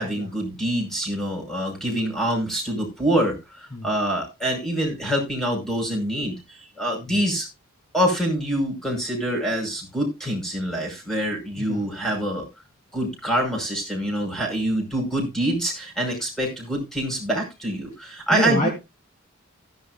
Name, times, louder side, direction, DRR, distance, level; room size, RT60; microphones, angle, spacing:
voice 1, 0.0-7.5 7.9-12.5 12.9-18.7, right 1 dB, ahead, 2 dB, 5.7 m, -25 dB
voice 2, 18.3-18.7, left 1 dB, 40° left, 1 dB, 2.8 m, -26 dB
16.5 x 10.5 x 2.3 m, 0.25 s
head